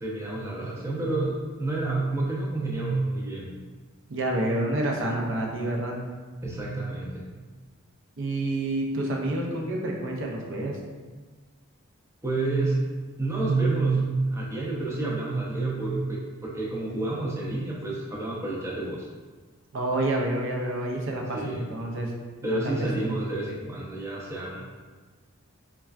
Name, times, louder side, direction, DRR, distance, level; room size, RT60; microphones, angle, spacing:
voice 1, 0.0-3.5 6.4-7.3 12.2-12.8 13.2-19.1 21.3-21.6 22.4-24.6, right 2 dB, 15° right, -4 dB, 0.5 m, -29 dB
voice 2, 4.1-6.0 8.2-10.8 19.7-22.1 22.4-23.1, right 1 dB, 60° right, 0 dB, 0.5 m, -28 dB
4.2 x 2.3 x 2.3 m, 1.4 s
head